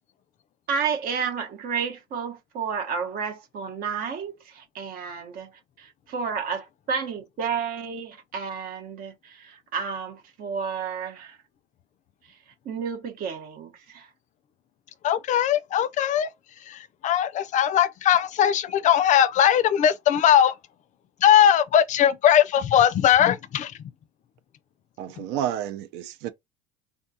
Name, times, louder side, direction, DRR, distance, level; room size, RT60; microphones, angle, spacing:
voice 1, 0.7-5.5 5.8-11.4 12.6-14.1, right 6 dB, 55° right, 1.1 m, -31 dB
voice 2, 15.0-16.3 16.7-20.5 21.2-23.7, left 10 dB, 45° left, 0.4 m, -20 dB
voice 3, 25.0-26.3, right 10 dB, 75° right, 0.5 m, -30 dB
3.6 x 2.3 x 2.7 m
supercardioid pair, 110°, 18 cm